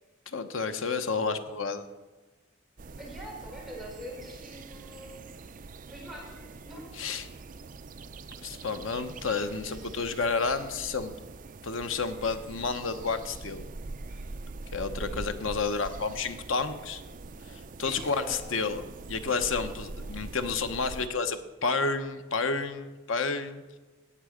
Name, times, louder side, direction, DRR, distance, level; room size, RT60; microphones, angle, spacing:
voice 1, 0.3-1.8 6.9-7.3 8.4-11.1 11.6-13.6 14.7-17.0 17.5-23.6, left 4 dB, 80° left, 9 dB, 1.0 m, -30 dB
sound 1, 2.8-21.1, right 3 dB, 40° right, 0.4 m, -43 dB
voice 2, 3.0-5.2 5.9-6.9 9.2-9.3 15.0-15.3 17.8-18.4, equal, ahead, -4 dB, 3.7 m, -44 dB
17.5 x 6.9 x 5.1 m, 1.3 s
head